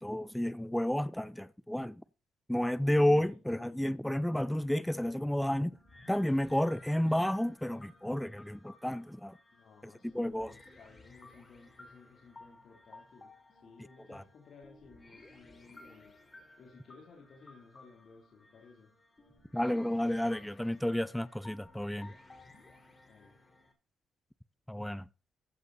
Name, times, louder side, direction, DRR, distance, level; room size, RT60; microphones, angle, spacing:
voice 1, 0.0-2.0 2.5-5.8 6.1-9.3 10.1-10.6 14.1-14.2 19.5-22.1 24.7-25.0, left 1 dB, 5° left, 0.6 m, -31 dB
voice 2, 2.8-4.0 9.5-16.1 16.6-18.9 23.1-23.3, left 4 dB, 60° left, 3.5 m, -57 dB
sound 1, 5.5-23.7, left 2 dB, 25° left, 3.6 m, -57 dB
15.0 x 8.2 x 4.2 m
cardioid pair, 90°, 0 cm